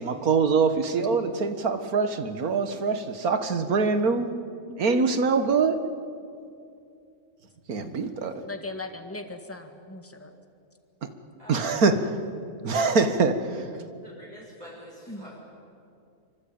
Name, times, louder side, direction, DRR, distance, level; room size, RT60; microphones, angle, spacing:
voice 1, 0.0-4.3 4.8-5.8 7.7-8.3 11.5-12.2 12.6-13.7, right 4 dB, 90° right, 9 dB, 2.0 m, -24 dB
voice 2, 4.7-5.1 8.4-10.3 15.1-15.3, left 2 dB, 10° left, 6 dB, 1.8 m, -38 dB
voice 3, 11.4-11.9 14.0-15.4, equal, 25° right, -6 dB, 5.9 m, -46 dB
26.5 x 24.0 x 8.9 m, 2.5 s
omnidirectional pair, 1.5 m